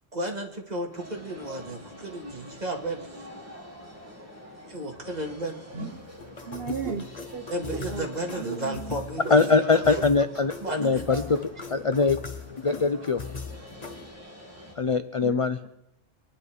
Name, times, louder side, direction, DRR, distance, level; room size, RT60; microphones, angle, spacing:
voice 1, 0.1-3.1 4.7-5.6 7.5-10.0 10.6-11.0, right 1 dB, 35° right, 1 dB, 2.4 m, -33 dB
sound 1, 0.9-14.7, equal, 10° right, 3.0 m, -47 dB
sound 2, 5.7-6.1 6.8-7.0 7.7-7.8 8.5-8.6 9.2-9.3 10.0-10.1 10.7-10.8 11.3-11.4 12.0-12.1 12.7-12.8, right 3 dB, 75° right, 2.2 m, -35 dB
sound 3, 6.2-14.1, left 5 dB, 35° left, 1.2 m, -39 dB
voice 2, 6.5-7.1 7.3-7.5 7.7-9.0 10.8-11.3 15.2-15.7, right 6 dB, 55° right, 5 dB, 1.1 m, -37 dB
voice 3, 9.3-11.4 11.7-12.2 12.6-13.2 14.8-15.6, left 4 dB, 50° left, 11 dB, 0.4 m, -22 dB
25.0 x 10.0 x 4.9 m, 0.84 s
omnidirectional pair, 1.3 m